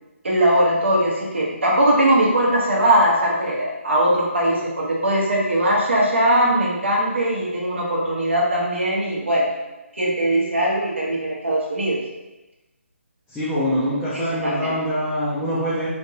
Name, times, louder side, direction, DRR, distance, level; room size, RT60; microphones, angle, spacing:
voice 1, 0.2-9.5 9.9-12.0 14.1-14.7, right 1 dB, 60° right, -3 dB, 1.1 m, -20 dB
voice 2, 13.3-15.9, equal, 5° left, -14 dB, 0.5 m, -24 dB
4.4 x 2.8 x 2.7 m, 1.0 s
figure-of-eight pair, 145°, 7 cm